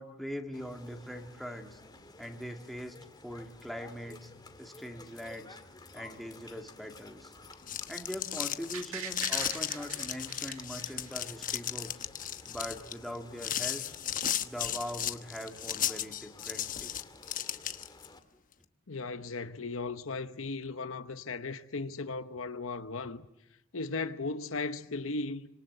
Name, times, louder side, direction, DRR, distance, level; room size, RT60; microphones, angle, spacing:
voice 1, 0.0-1.8 2.2-3.0 3.2-4.3 4.6-5.6 5.9-7.3 7.9-12.0 12.4-13.8 14.4-16.9 18.3-18.4, equal, ahead, 2.1 m, -42 dB
sound 1, 0.5-18.2, left 2 dB, 20° left, 2.2 m, -53 dB
sound 2, 7.4-18.1, left 10 dB, 40° left, 1.1 m, -35 dB
sound 3, 8.7-11.7 12.0-12.1, right 7 dB, 85° right, 2.3 m, -43 dB
voice 2, 18.9-23.3 23.7-25.5, left 3 dB, 70° left, 1.0 m, -36 dB
27.5 x 26.0 x 8.0 m
head